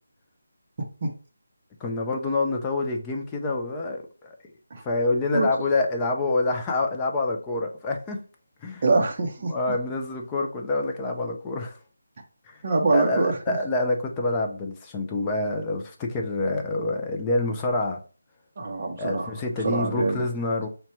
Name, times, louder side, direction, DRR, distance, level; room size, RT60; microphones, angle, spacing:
voice 1, 1.8-4.3 4.8-8.2 8.6-8.8 9.5-11.8 12.5-12.6 12.9-18.0 19.0-20.7, left 2 dB, 10° left, 0.3 m, -27 dB
voice 2, 8.8-9.5 12.6-13.6 18.6-19.4 19.6-20.2, right 3 dB, 30° right, 0.7 m, -24 dB
5.8 x 2.2 x 2.7 m
figure-of-eight pair, 175°, 0 cm